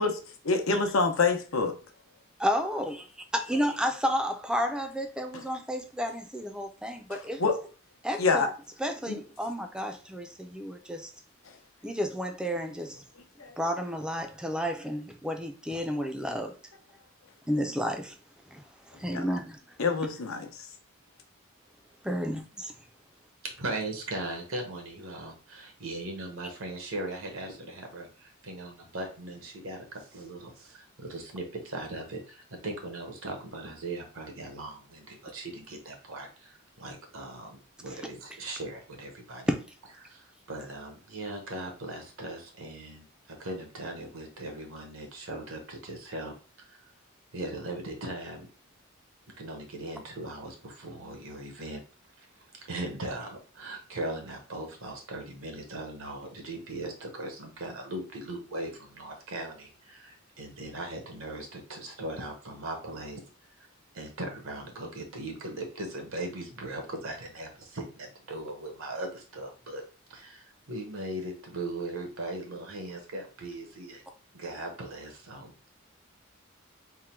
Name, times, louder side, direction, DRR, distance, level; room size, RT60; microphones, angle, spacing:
voice 1, 0.0-1.7 5.3-5.4 7.1-7.6 8.2-8.5 9.1-9.2 11.4-11.6 13.4-13.5 18.9-19.2 19.8-20.7, left 4 dB, 80° left, 0.7 m, -27 dB
voice 2, 2.4-3.0 3.3-7.5 8.0-8.5 8.8-11.1 11.8-13.0 13.6-16.5 17.5-18.1 18.5-19.6 22.0-22.7 39.5-39.6, equal, 5° right, 0.4 m, -31 dB
voice 3, 23.6-39.5 40.0-46.3 46.6-46.8 47.3-48.5 49.3-51.8 52.2-52.3 52.7-63.2 63.9-69.8 70.1-74.0 74.3-75.7, right 2 dB, 80° right, 1.1 m, -39 dB
3.6 x 2.2 x 4.4 m
head